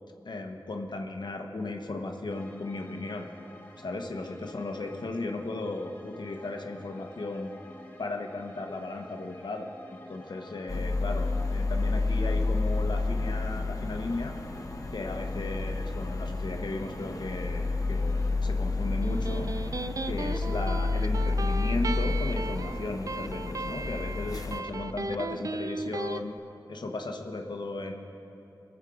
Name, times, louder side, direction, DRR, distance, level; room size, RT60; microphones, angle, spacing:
voice 1, 0.2-3.3 3.8-7.5 8.0-9.7 10.1-14.3 14.9-19.5 20.0-26.3 26.7-27.9, left 2 dB, 70° left, 3 dB, 1.1 m, -35 dB
sound 1, 2.3-18.3, left 1 dB, 20° left, 1.6 m, -50 dB
sound 2, 10.7-24.6, left 3 dB, 50° left, 0.9 m, -30 dB
Electric guitar, 18.8-26.2, right 3 dB, 45° right, 0.4 m, -36 dB
21.5 x 7.3 x 5.0 m, 2.9 s
wide cardioid pair, 55°, 8 cm